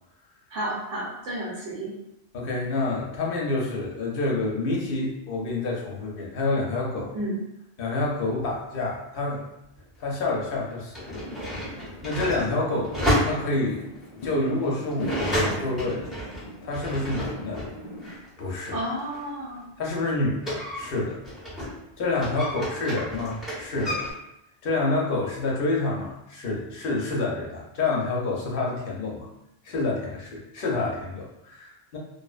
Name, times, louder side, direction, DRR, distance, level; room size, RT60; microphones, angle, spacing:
voice 1, 0.5-1.9 7.1-7.4 18.7-19.6, right 1 dB, 85° right, -6 dB, 1.2 m, -31 dB
voice 2, 2.3-7.1 7.8-9.4 10.0-11.1 12.0-13.8 14.2-16.0 16.6-17.6 18.4-18.8 19.8-21.2 22.0-24.0 24.6-29.3 29.6-32.0, left 2 dB, 55° left, -3 dB, 0.7 m, -28 dB
sound 1, 9.8-9.9 10.7-17.7 18.0-21.8 22.1-24.1, equal, ahead, 0.7 m, -31 dB
Fireworks, 11.1-18.2, left 1 dB, 85° left, 0.3 m, -38 dB
2.6 x 2.0 x 2.4 m, 0.85 s
omnidirectional pair, 1.2 m